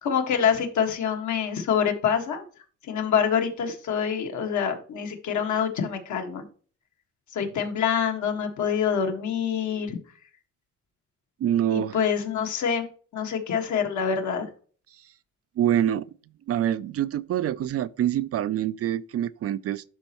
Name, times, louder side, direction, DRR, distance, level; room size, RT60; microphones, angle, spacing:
voice 1, 0.0-2.4 2.8-6.4 7.3-10.0 11.7-12.9 13.1-14.5, left 7 dB, 70° left, 1.7 m, -26 dB
voice 2, 11.4-12.0 15.6-16.1 16.5-19.8, right 11 dB, 50° right, 0.4 m, -25 dB
12.0 x 4.2 x 3.0 m
cardioid pair, 90°, 30 cm